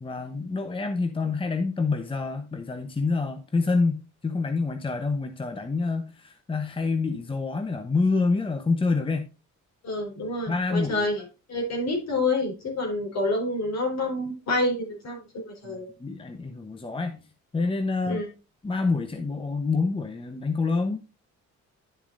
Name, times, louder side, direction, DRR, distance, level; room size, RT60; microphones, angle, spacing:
voice 1, 0.0-9.3 10.5-11.1 15.6-17.2 17.5-18.2 18.6-21.0, left 4 dB, 15° left, 0.9 m, -27 dB
voice 2, 9.8-11.2 11.5-15.9 18.0-18.3, left 2 dB, 60° left, 4.0 m, -28 dB
10.5 x 6.9 x 2.6 m
cardioid pair, 90°, 30 cm